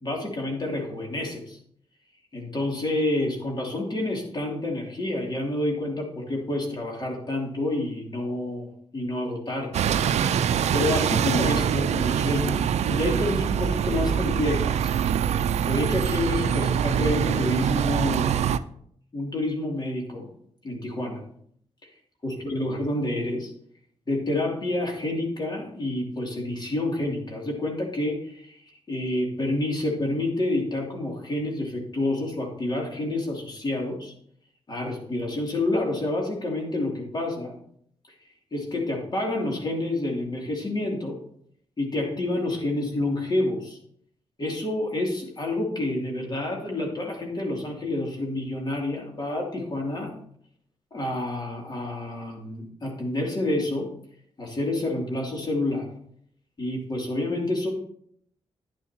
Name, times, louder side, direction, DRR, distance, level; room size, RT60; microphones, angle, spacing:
voice 1, 0.0-1.6 2.3-9.9 10.3-12.6 12.9-14.9 15.6-18.4 19.1-20.2 20.6-21.2 22.2-23.5 24.1-28.6 28.9-34.1 34.7-37.5 38.5-41.2 41.8-43.8 44.4-50.1 50.9-53.9 54.4-55.9 56.6-57.7, left 1 dB, 40° left, -1 dB, 3.1 m, -28 dB
Bus, 9.7-18.6, right 8 dB, 85° right, 0.4 m, -24 dB
10.0 x 9.6 x 3.0 m, 0.66 s
cardioid pair, 75°, 11 cm